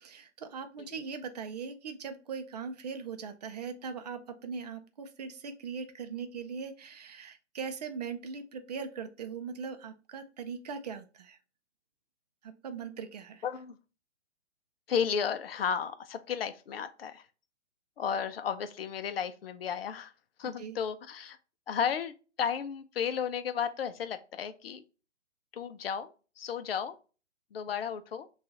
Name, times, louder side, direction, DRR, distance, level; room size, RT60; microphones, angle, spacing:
voice 1, 0.0-11.4 12.4-13.4 20.6-20.8, right 6 dB, 35° right, 8 dB, 0.5 m, -40 dB
voice 2, 13.4-13.8 14.9-17.3 18.0-20.1 20.4-21.4 21.7-24.8 25.5-27.0 27.5-28.3, left 7 dB, 55° left, 10 dB, 0.6 m, -33 dB
5.9 x 2.4 x 2.8 m, 0.34 s
figure-of-eight pair, 130°, 36 cm